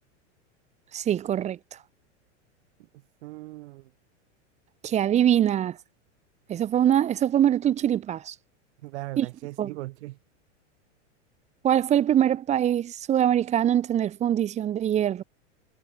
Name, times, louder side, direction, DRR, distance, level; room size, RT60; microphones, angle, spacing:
voice 1, 0.9-1.6 4.8-5.8 6.5-8.3 9.2-9.3 9.6-9.7 11.6-15.2, right 10 dB, 20° right, 0.5 m, -23 dB
voice 2, 3.2-3.9 8.8-10.2, right 19 dB, 65° right, 4.8 m, -38 dB
hypercardioid pair, 115°, 36 cm